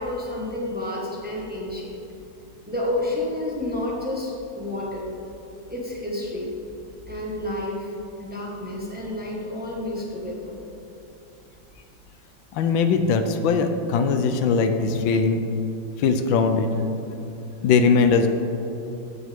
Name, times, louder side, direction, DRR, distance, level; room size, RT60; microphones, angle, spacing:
voice 1, 0.0-2.1 2.6-5.1 5.7-6.5 7.1-10.6, left 1 dB, 5° right, -4 dB, 1.2 m, -30 dB
voice 2, 12.5-15.4 16.0-16.7 17.6-18.3, left 5 dB, 80° left, 7 dB, 1.4 m, -20 dB
15.0 x 6.3 x 3.6 m, 2.9 s
omnidirectional pair, 2.1 m